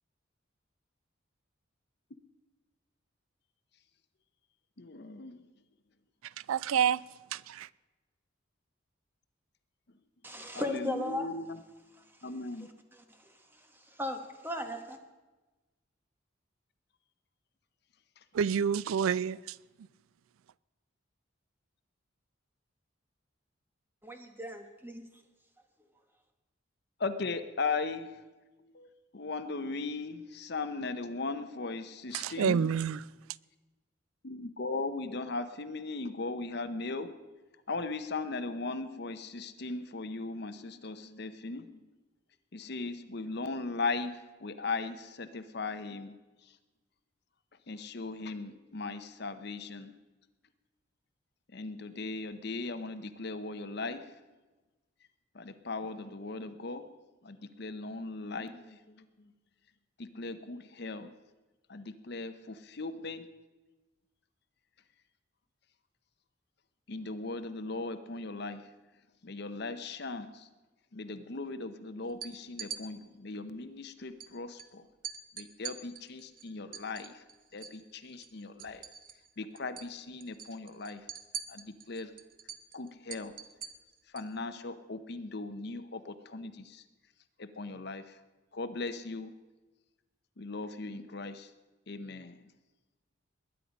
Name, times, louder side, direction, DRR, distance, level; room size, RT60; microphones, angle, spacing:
voice 1, 4.8-5.5 10.5-11.6 12.2-12.7 18.2-18.3 27.0-28.2 28.6-32.7 34.2-37.1 37.7-41.9 42.5-46.6 47.7-49.9 51.5-54.2 55.3-56.9 57.2-59.3 60.0-61.1 61.7-63.3 66.9-68.7 69.2-70.5 70.9-74.9 75.3-77.2 77.5-78.8 79.4-81.1 81.5-82.1 82.7-83.3 84.1-86.8 87.4-88.2 88.5-89.3 90.4-91.5 91.9-92.5, left 3 dB, 55° left, 10 dB, 0.8 m, -38 dB
voice 2, 6.5-7.0 7.3-7.7 18.3-19.4 32.1-33.0, right 7 dB, 90° right, 21 dB, 0.3 m, -28 dB
voice 3, 10.2-11.3 14.0-15.0 24.0-25.0, left 1 dB, 10° right, 5 dB, 1.2 m, -36 dB
sound 1, 72.1-72.8 74.2-74.3 74.6-74.7 75.0-77.8 78.1-79.3 79.6-79.9 80.2-84.3, right 8 dB, 45° right, 0.8 m, -43 dB
20.5 x 10.0 x 5.2 m, 1.2 s
head